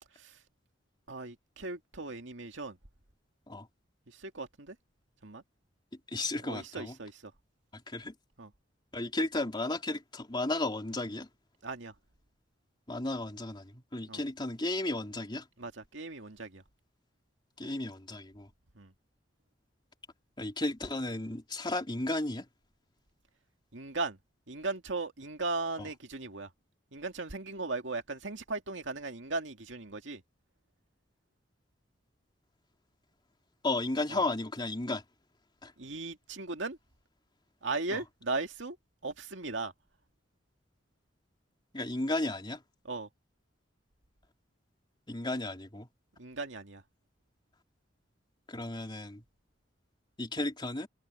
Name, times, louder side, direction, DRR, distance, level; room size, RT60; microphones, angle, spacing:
voice 1, 1.1-2.8 4.2-4.8 5.2-5.4 6.4-7.3 8.4-8.5 11.6-11.9 14.1-14.2 15.6-16.6 18.8-18.9 23.7-24.2 24.5-26.5 26.9-30.2 34.1-34.2 35.8-36.8 37.6-38.8 39.0-39.7 42.8-43.1 46.2-46.8, right 3 dB, 75° right, 2.2 m, -37 dB
voice 2, 6.1-6.9 7.7-8.1 8.9-11.3 12.9-15.4 17.6-18.5 20.4-22.5 25.8-25.9 33.6-35.0 35.6-35.7 37.9-38.0 41.7-42.6 45.1-45.9 48.5-49.2 50.2-50.9, left 2 dB, 25° left, 3.1 m, -34 dB
head